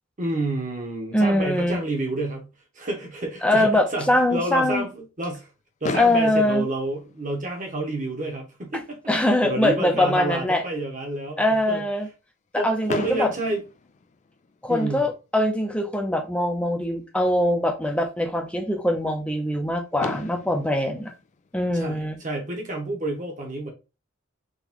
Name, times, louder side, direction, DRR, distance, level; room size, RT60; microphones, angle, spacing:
voice 1, 0.2-5.5 5.8-9.0 9.4-11.9 12.5-13.6 14.7-15.1 21.7-23.7, right 2 dB, 40° right, 1.2 m, -29 dB
voice 2, 1.1-1.8 3.4-4.9 6.0-6.6 9.1-10.6 11.4-12.1 12.5-13.3 14.6-21.1 21.5-22.2, left 1 dB, 5° left, 0.7 m, -22 dB
Fireworks, 5.8-7.9 8.7-8.8 9.0-9.2 9.5-9.6 12.9-14.7 16.4-16.5 19.5-19.6 20.0-22.3, left 4 dB, 35° left, 0.3 m, -36 dB
3.9 x 3.1 x 3.0 m
head